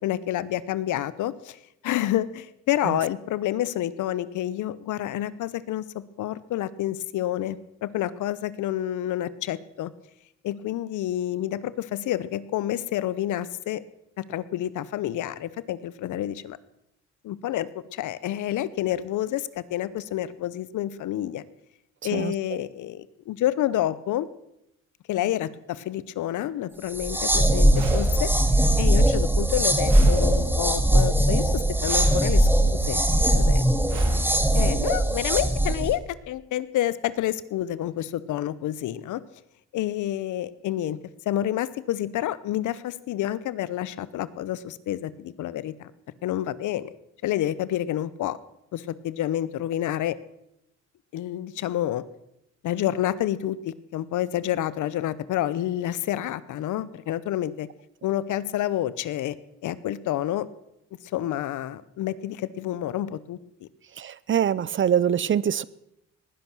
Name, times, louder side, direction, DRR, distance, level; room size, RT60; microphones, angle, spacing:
voice 1, 0.0-9.9 10.4-13.8 14.2-16.6 17.2-21.4 22.0-24.3 25.1-28.3 28.8-33.0 33.3-33.7 34.5-39.2 39.7-41.0 41.3-45.9 46.2-46.9 47.2-48.4 48.7-50.2 51.1-52.0 52.6-57.7 58.0-59.4 59.6-60.5 61.0-63.7, left 12 dB, 80° left, 18 dB, 0.8 m, -29 dB
sound 1, 26.9-35.9, right 1 dB, 5° right, 1.6 m, -20 dB
sound 2, 27.7-28.6 29.9-30.8 31.8-32.6 33.9-34.8, right 6 dB, 80° right, 2.4 m, -41 dB
voice 2, 64.0-65.6, right 9 dB, 40° right, 21 dB, 0.6 m, -24 dB
19.0 x 10.5 x 6.2 m, 0.83 s
cardioid pair, 90°, 30 cm